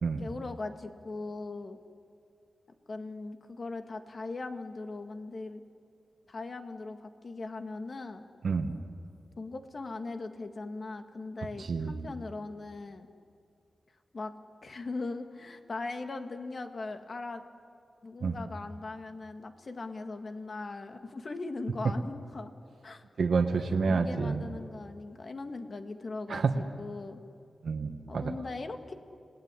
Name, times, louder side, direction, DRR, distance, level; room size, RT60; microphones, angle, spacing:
voice 1, 0.2-1.8 2.9-5.6 6.3-8.2 9.4-13.1 14.1-14.3 14.6-17.4 18.0-22.5 22.8-23.0 23.9-27.2 28.1-28.9, left 3 dB, 50° left, 6 dB, 1.9 m, -39 dB
voice 2, 11.6-12.0 18.2-18.4 23.2-24.4 26.3-26.5 27.6-28.3, right 4 dB, 75° right, 5 dB, 1.6 m, -29 dB
30.0 x 19.0 x 9.9 m, 2.4 s
wide cardioid pair, 90°, 0 cm